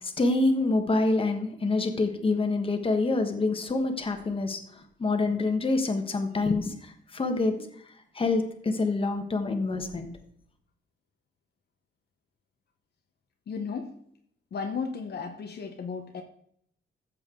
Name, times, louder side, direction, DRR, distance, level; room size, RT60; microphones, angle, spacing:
voice 1, 0.0-7.7 8.1-10.1, left 3 dB, 25° left, 5 dB, 1.3 m, -26 dB
voice 2, 13.5-14.0 14.5-16.2, left 5 dB, 55° left, 4 dB, 1.1 m, -34 dB
14.0 x 7.6 x 3.8 m, 0.67 s
wide cardioid pair, 150°, 20 cm